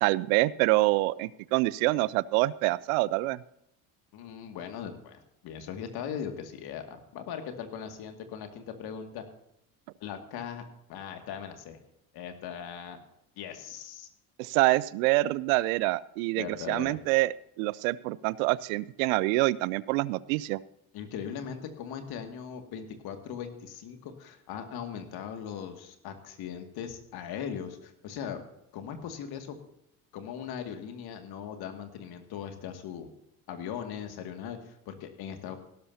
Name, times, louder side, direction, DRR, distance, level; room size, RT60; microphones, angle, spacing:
voice 1, 0.0-3.4 14.4-20.6, right 20 dB, 75° right, 20 dB, 0.6 m, -26 dB
voice 2, 4.1-9.2 10.0-10.6 10.9-11.8 12.1-13.0 13.4-14.1 16.4-17.0 20.9-28.4 28.7-29.6 30.1-33.1 33.5-35.6, left 8 dB, 60° left, 6 dB, 2.3 m, -39 dB
17.0 x 12.5 x 2.8 m, 0.80 s
hypercardioid pair, 65°, 42 cm